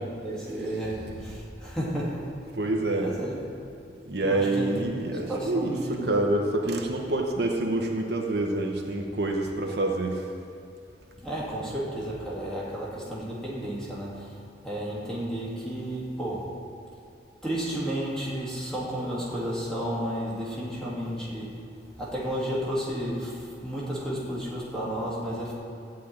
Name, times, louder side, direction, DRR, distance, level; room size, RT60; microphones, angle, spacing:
voice 1, 0.0-2.3 3.0-3.5 4.2-6.1 11.2-16.6 17.4-21.6 22.0-25.5, equal, 5° left, -6 dB, 2.0 m, -32 dB
voice 2, 2.6-3.1 4.0-10.3, right 2 dB, 60° right, 1 dB, 1.0 m, -27 dB
13.5 x 4.6 x 8.7 m, 2.5 s
head